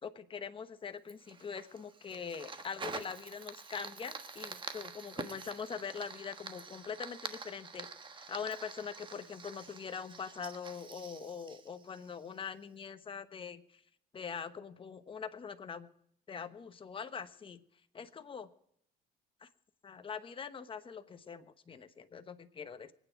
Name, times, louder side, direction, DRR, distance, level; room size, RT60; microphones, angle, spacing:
voice 1, 0.0-7.9 8.1-13.8 14.1-15.9 16.3-17.6 17.9-18.5 19.4-19.5 19.8-22.9, left 6 dB, 30° left, 9 dB, 1.1 m, -43 dB
Fire, 1.1-12.5, right 5 dB, 30° right, 1.4 m, -47 dB
24.5 x 9.4 x 4.6 m, 0.70 s
cardioid pair, 110°, 17 cm